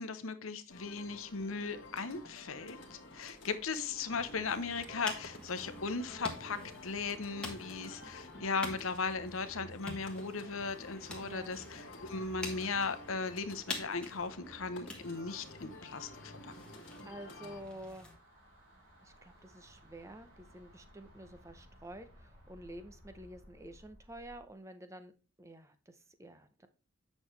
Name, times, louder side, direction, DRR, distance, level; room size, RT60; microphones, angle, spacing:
voice 1, 0.0-6.6 6.8-16.5, left 4 dB, 75° left, 11 dB, 0.8 m, -37 dB
sound 1, 0.7-17.6, left 2 dB, 55° left, 1.6 m, -52 dB
sound 2, 4.1-18.2, left 1 dB, 5° left, 1.3 m, -48 dB
voice 2, 11.2-11.6 17.1-18.1 19.0-25.1 25.4-26.7, right 1 dB, 15° right, 9 dB, 0.7 m, -49 dB
sound 3, 14.8-24.5, equal, 70° right, 3.6 m, -60 dB
8.4 x 6.3 x 3.3 m, 0.34 s
head